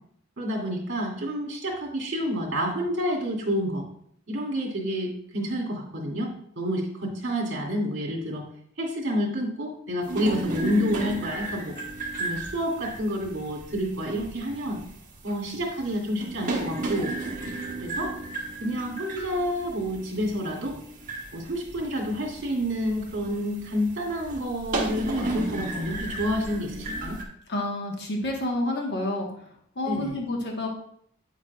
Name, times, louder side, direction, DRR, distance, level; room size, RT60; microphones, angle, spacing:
voice 1, 0.4-3.9 4.3-8.5 8.8-11.8 12.2-14.8 15.2-17.1 17.8-18.1 18.6-20.8 21.3-27.2 29.9-30.2, equal, 55° right, -1 dB, 2.2 m, -29 dB
sound 1, 10.0-27.2, right 2 dB, 40° right, 1.3 m, -35 dB
voice 2, 27.5-29.3 29.8-30.7, left 1 dB, 55° left, 0 dB, 1.3 m, -29 dB
8.9 x 7.6 x 2.3 m, 0.66 s
head